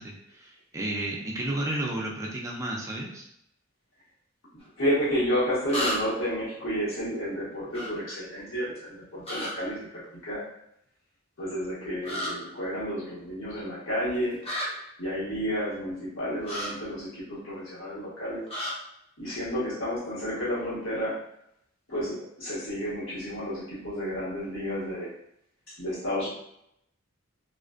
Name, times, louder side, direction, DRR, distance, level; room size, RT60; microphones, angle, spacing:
voice 1, 0.0-3.2, right 1 dB, 15° right, -2 dB, 0.3 m, -32 dB
sound 1, 4.6-4.7 5.7-6.3 7.7-7.9 9.2-9.5 12.0-12.3 14.4-14.7 16.4-16.7 18.5-18.7, equal, 30° left, 0.6 m, -31 dB
voice 2, 4.8-10.4 11.4-14.4 15.0-18.4 19.2-21.2 21.9-25.1 25.8-26.3, equal, 75° left, -8 dB, 1.2 m, -31 dB
2.4 x 2.2 x 2.4 m, 0.76 s
head